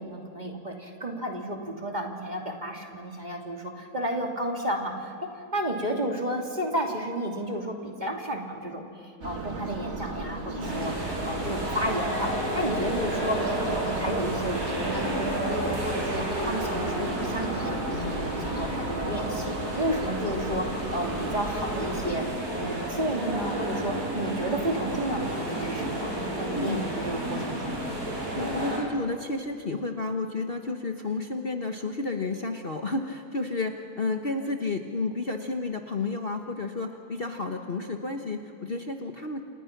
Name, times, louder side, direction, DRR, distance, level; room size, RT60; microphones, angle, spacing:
voice 1, 0.0-5.1 5.5-26.1 26.4-27.8, right 1 dB, 25° right, 1 dB, 2.8 m, -32 dB
sound 1, 9.2-22.2, right 2 dB, 45° right, 2.7 m, -37 dB
sound 2, 10.6-28.8, right 1 dB, 70° right, 6.0 m, -31 dB
voice 2, 28.3-39.4, left 3 dB, 40° left, 4 dB, 1.3 m, -31 dB
29.0 x 28.5 x 6.0 m, 2.3 s
omnidirectional pair, 1.7 m